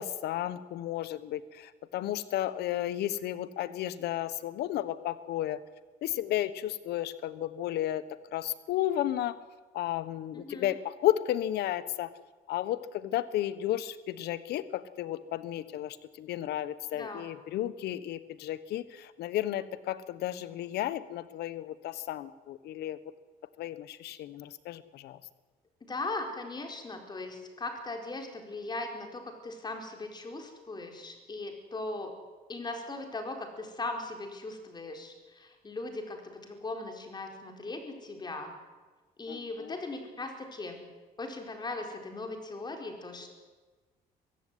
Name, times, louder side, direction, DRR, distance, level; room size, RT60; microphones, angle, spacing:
voice 1, 0.0-5.6 6.0-8.0 8.3-9.3 9.7-12.1 12.5-23.0 23.6-25.2 39.3-39.8, left 13 dB, 75° left, 15 dB, 1.3 m, -33 dB
voice 2, 10.3-10.7 16.9-17.3 25.8-32.2 32.5-38.5 39.2-40.8 41.2-43.3, left 2 dB, 25° left, 4 dB, 4.5 m, -39 dB
22.5 x 15.5 x 9.4 m, 1.3 s
cardioid pair, 110°, 17 cm